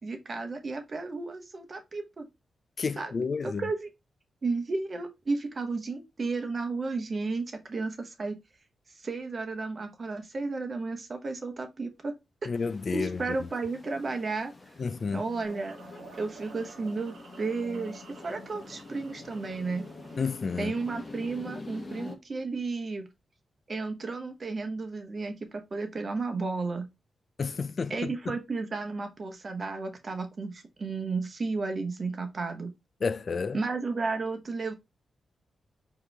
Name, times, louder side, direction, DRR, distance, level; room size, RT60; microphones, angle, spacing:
voice 1, 0.0-2.3 3.0-3.9 4.4-8.4 9.0-12.1 12.4-12.5 12.9-14.5 15.1-15.8 16.2-19.9 20.6-23.1 23.7-26.9 27.9-32.7 33.5-34.7, right 3 dB, 45° right, 1.0 m, -33 dB
voice 2, 2.8-3.6 12.5-13.2 14.8-15.2 20.2-20.7 27.4-28.1 33.0-33.6, left 5 dB, 50° left, 0.3 m, -30 dB
sound 1, 12.5-22.2, left 3 dB, 35° left, 1.0 m, -46 dB
sound 2, 15.4-21.4, right 4 dB, 90° right, 0.9 m, -51 dB
4.7 x 3.0 x 3.3 m
cardioid pair, 75°, 0 cm